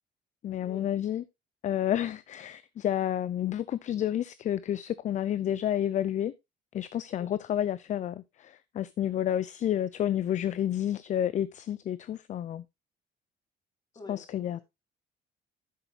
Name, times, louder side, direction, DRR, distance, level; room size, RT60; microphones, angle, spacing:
voice 1, 0.4-1.2 1.6-6.3 6.7-12.6 14.1-14.6, left 11 dB, 45° left, 0.5 m, -30 dB
voice 2, 14.0-14.6, left 2 dB, 25° left, 3.7 m, -47 dB
10.5 x 8.1 x 2.8 m
cardioid pair, 110°, 17 cm